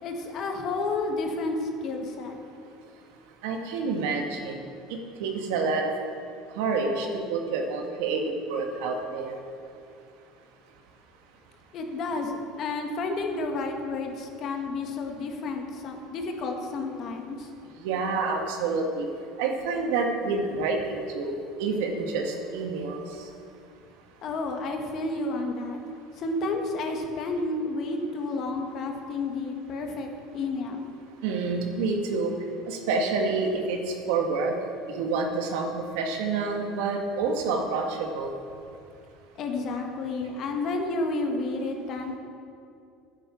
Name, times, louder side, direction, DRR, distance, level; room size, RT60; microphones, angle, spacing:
voice 1, 0.0-2.4 11.7-17.5 24.2-25.8 26.2-30.9 39.4-42.2, left 3 dB, 55° left, 3 dB, 1.9 m, -31 dB
voice 2, 3.4-4.6 4.9-5.9 6.6-9.4 17.8-19.1 19.4-23.3 31.2-32.3 32.7-34.5 34.9-38.3, right 4 dB, 80° right, 3 dB, 1.7 m, -28 dB
10.0 x 9.7 x 7.1 m, 2.5 s
supercardioid pair, 105°, 0 cm